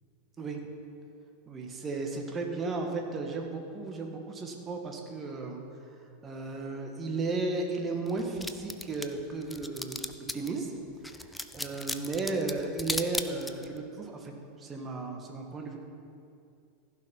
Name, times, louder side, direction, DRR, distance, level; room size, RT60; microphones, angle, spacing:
voice 1, 1.5-5.6 6.2-10.1 10.3-10.7 11.5-14.3 14.6-15.8, right 3 dB, 25° right, 3 dB, 1.7 m, -34 dB
sound 1, 8.1-10.5 11.0-13.8, left 2 dB, 5° left, 0.6 m, -36 dB
15.5 x 5.8 x 5.4 m, 2.5 s
figure-of-eight pair, 85°, 0 cm